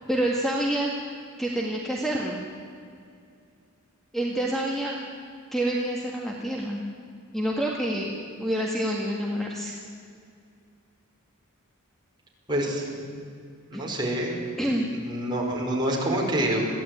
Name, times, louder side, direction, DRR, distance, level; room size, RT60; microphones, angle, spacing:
voice 1, 0.1-0.9 1.4-2.5 4.1-5.0 5.5-6.8 7.3-8.1 8.4-9.8 13.7-13.8 14.6-14.9, right 1 dB, ahead, -2 dB, 1.8 m, -27 dB
voice 2, 12.5-12.9 13.7-14.3 15.0-16.7, right 1 dB, 20° right, -2 dB, 5.0 m, -26 dB
22.0 x 15.0 x 9.2 m, 2.3 s
head